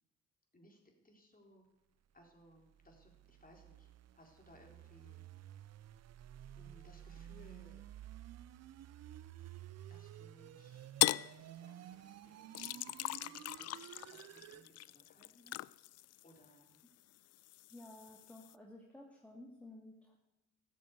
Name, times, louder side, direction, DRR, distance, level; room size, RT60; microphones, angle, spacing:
voice 1, 0.5-1.7 2.1-5.2 6.5-7.8 9.9-15.7 16.2-16.8, equal, 20° left, 1 dB, 4.1 m, -63 dB
sound 1, 2.5-14.7, right 12 dB, 40° right, 0.6 m, -53 dB
sound 2, 11.0-11.3 12.5-16.8 17.2-18.5, left 15 dB, 40° left, 0.4 m, -38 dB
voice 2, 17.7-20.2, left 1 dB, 5° left, -1 dB, 2.2 m, -54 dB
14.0 x 7.5 x 8.5 m, 0.96 s
hypercardioid pair, 60°, 40 cm